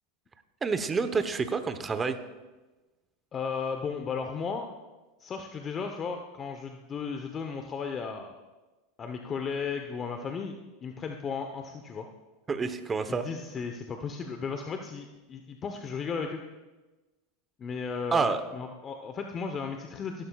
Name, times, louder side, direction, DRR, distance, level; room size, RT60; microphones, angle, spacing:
voice 1, 0.6-2.2 12.5-13.3 18.1-18.4, right 4 dB, 20° right, 9 dB, 0.9 m, -28 dB
voice 2, 3.3-4.7 5.2-8.4 9.0-10.5 10.8-12.1 13.1-16.4 17.6-20.3, left 5 dB, 30° left, 5 dB, 0.9 m, -35 dB
17.0 x 11.5 x 2.4 m, 1.2 s
hypercardioid pair, 105°, 0 cm